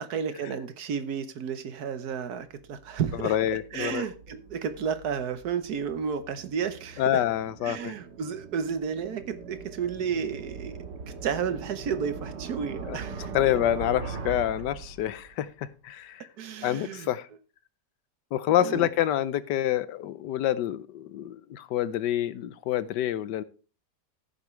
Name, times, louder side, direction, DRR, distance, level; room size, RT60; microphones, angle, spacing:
voice 1, 0.0-3.4 3.7-7.2 7.6-10.9 11.2-13.3 16.4-17.1 18.6-18.9, right 7 dB, 70° right, 1.4 m, -32 dB
sound 1, 2.5-15.5, right 5 dB, 85° right, 1.9 m, -41 dB
voice 2, 3.2-4.0 7.0-7.9 12.9-13.0 13.3-16.3 16.6-17.3 18.3-23.4, left 12 dB, 90° left, 1.3 m, -27 dB
15.0 x 7.2 x 3.2 m
omnidirectional pair, 1.8 m